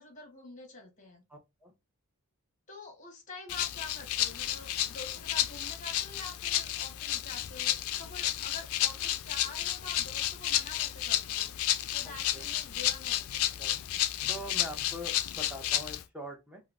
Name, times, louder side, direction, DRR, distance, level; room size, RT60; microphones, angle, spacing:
voice 1, 0.0-1.2 2.7-11.6 11.9-13.4, left 2 dB, 35° left, 0.9 m, -47 dB
voice 2, 1.3-1.7 12.0-12.4 13.6-13.8 14.3-16.6, equal, 5° right, 0.6 m, -43 dB
Rattle (instrument), 3.5-16.0, left 12 dB, 65° left, 0.3 m, -32 dB
3.6 x 2.0 x 2.4 m
head